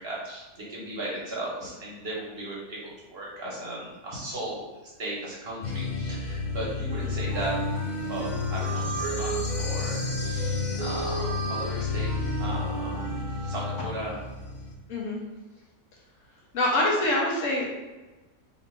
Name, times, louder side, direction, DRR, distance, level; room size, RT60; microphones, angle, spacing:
voice 1, 0.0-7.5 8.1-13.1 13.4-14.2, right 1 dB, 45° right, -4 dB, 1.1 m, -36 dB
sound 1, 5.6-14.7, left 4 dB, 85° left, 0.4 m, -31 dB
Wind instrument woodwind instrument, 6.9-14.2, right 5 dB, 75° right, 1.2 m, -36 dB
voice 2, 16.5-17.7, left 1 dB, 60° left, -3 dB, 1.2 m, -25 dB
3.2 x 2.8 x 4.3 m, 1.1 s
omnidirectional pair, 1.6 m